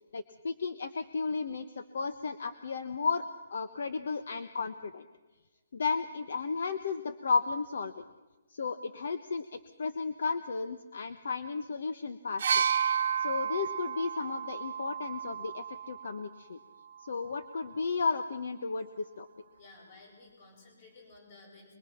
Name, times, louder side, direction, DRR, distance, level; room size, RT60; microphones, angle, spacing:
voice 1, 0.1-3.2 3.5-5.1 5.7-8.0 8.5-12.6 13.2-16.6 17.0-19.3, left 4 dB, 60° left, 10 dB, 1.1 m, -34 dB
sound 1, 12.4-16.2 17.2-17.4, right 8 dB, 50° right, 0.7 m, -31 dB
voice 2, 19.6-21.7, left 3 dB, 30° left, 1 dB, 7.4 m, -55 dB
23.0 x 23.0 x 5.9 m, 1.2 s
hypercardioid pair, 175°, 0 cm